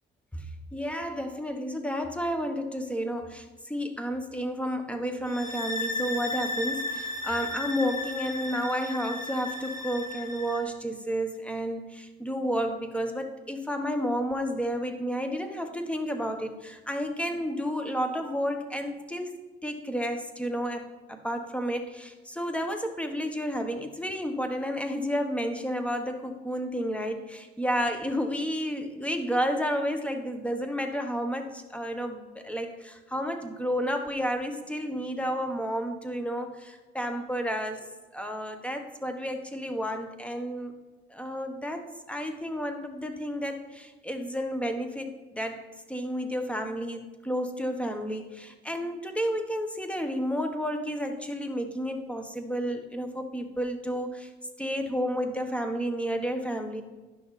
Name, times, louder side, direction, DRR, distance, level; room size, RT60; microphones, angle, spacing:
voice 1, 0.7-37.9 38.1-40.7 41.1-54.3 54.6-56.8, equal, 5° left, 6 dB, 1.1 m, -31 dB
sound 1, 5.2-10.6, left 2 dB, 40° left, 1.8 m, -34 dB
11.0 x 6.0 x 4.1 m, 1.2 s
cardioid pair, 90°, 20 cm